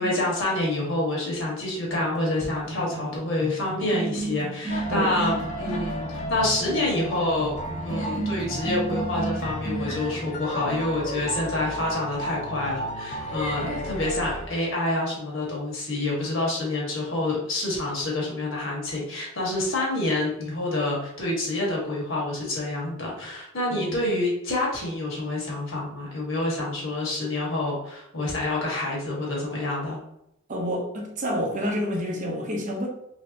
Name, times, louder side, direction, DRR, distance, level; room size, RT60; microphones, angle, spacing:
voice 1, 0.0-7.5 7.8-30.0, left 2 dB, 60° left, -3 dB, 1.2 m, -27 dB
sound 1, 1.9-10.4, right 2 dB, ahead, 0.9 m, -33 dB
sound 2, 4.7-14.5, equal, 35° left, 0.4 m, -34 dB
voice 2, 30.5-32.9, equal, 35° right, 0 dB, 0.6 m, -29 dB
3.2 x 2.6 x 2.6 m, 0.82 s
head